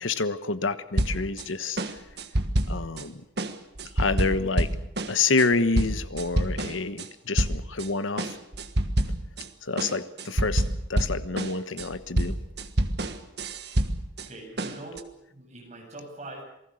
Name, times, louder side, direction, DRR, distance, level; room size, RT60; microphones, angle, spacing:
voice 1, 0.0-1.8 2.7-3.2 4.0-4.7 5.1-8.3 9.6-10.6 10.9-12.4, left 4 dB, 90° left, 12 dB, 1.2 m, -28 dB
sound 1, 1.0-1.5 1.8-3.0 3.4-7.1 7.4-7.9 8.2-9.5 9.8-14.3 14.6-15.0, right 1 dB, 55° right, 1.5 m, -27 dB
voice 2, 14.3-15.0 15.3-16.4, right 2 dB, 35° right, 0 dB, 8.0 m, -42 dB
27.5 x 19.5 x 6.5 m, 0.82 s
head